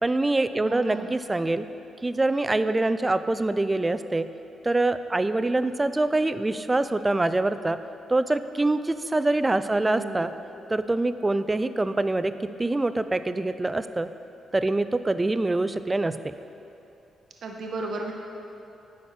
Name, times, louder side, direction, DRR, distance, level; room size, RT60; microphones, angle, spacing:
voice 1, 0.0-1.7 2.0-4.3 4.6-7.8 8.1-10.3 10.7-14.1 14.5-16.3, right 2 dB, 20° right, 12 dB, 0.3 m, -25 dB
voice 2, 0.6-1.1 9.8-10.3 17.4-18.1, right 3 dB, 65° right, 1 dB, 0.7 m, -34 dB
9.7 x 4.3 x 5.7 m, 2.9 s
cardioid pair, 70°, 0 cm